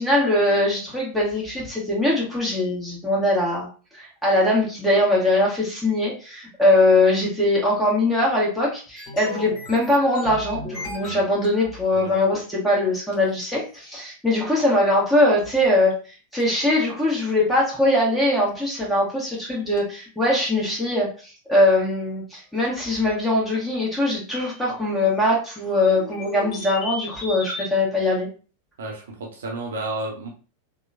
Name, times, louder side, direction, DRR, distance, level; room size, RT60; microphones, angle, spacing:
voice 1, 0.0-3.7 3.9-16.0 16.3-28.3, left 1 dB, ahead, -5 dB, 1.2 m, -21 dB
sound 1, 9.0-11.9 12.7-12.8 13.1-13.2 13.4-13.5 15.5-15.6 15.9-16.0 16.4-16.5 17.3-17.4 18.5-18.6 18.8-18.9 19.4-19.5 19.8-19.9 22.6-23.2 24.3-24.7 25.8-27.7, left 1 dB, 45° left, 1.0 m, -36 dB
voice 2, 28.8-30.3, right 2 dB, 60° right, 0 dB, 0.6 m, -31 dB
2.8 x 2.1 x 2.6 m, 0.37 s
figure-of-eight pair, 90°, 0 cm